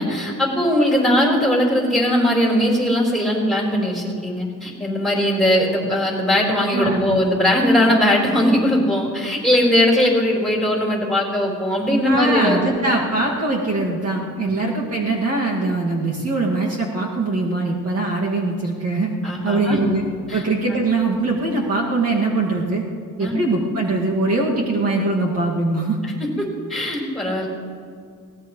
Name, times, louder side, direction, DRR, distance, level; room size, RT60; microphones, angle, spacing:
voice 1, 0.0-12.8 14.4-14.6 19.2-19.8 20.3-20.4 23.2-23.3 26.2-27.5, left 1 dB, ahead, -3 dB, 4.5 m, -19 dB
voice 2, 6.7-7.0 12.0-19.1 19.4-20.0 20.3-22.8 23.2-26.0, right 2 dB, 45° right, -3 dB, 2.3 m, -22 dB
23.0 x 18.5 x 3.2 m, 2.2 s
cardioid pair, 125°, 34 cm